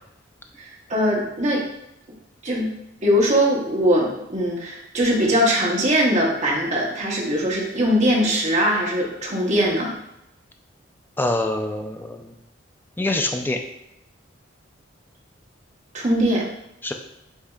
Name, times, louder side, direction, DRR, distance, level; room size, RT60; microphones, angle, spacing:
voice 1, 0.6-1.6 2.4-2.7 3.0-9.9 15.9-16.5, equal, 35° right, -4 dB, 1.1 m, -21 dB
voice 2, 11.2-12.3 13.0-13.6 16.8-16.9, left 2 dB, 10° left, 4 dB, 0.3 m, -25 dB
8.1 x 2.8 x 2.4 m, 0.84 s
head